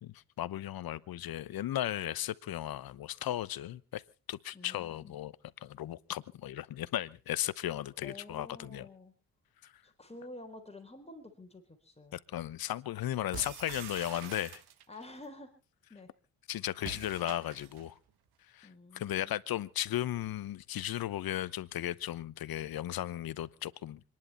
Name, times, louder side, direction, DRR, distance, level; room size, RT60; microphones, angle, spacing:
voice 1, 0.0-4.0 4.3-5.3 5.6-8.9 9.6-9.7 12.1-14.6 16.5-18.0 18.5-24.0, left 13 dB, 60° left, 1.0 m, -36 dB
voice 2, 4.5-5.2 8.0-9.1 9.8-12.2 14.9-15.5 15.9-16.1 18.6-19.3, left 2 dB, 15° left, 3.8 m, -49 dB
sound 1, 13.3-15.0 16.8-17.9, right 9 dB, 70° right, 1.8 m, -46 dB
27.5 x 11.0 x 4.3 m
supercardioid pair, 60°, 40 cm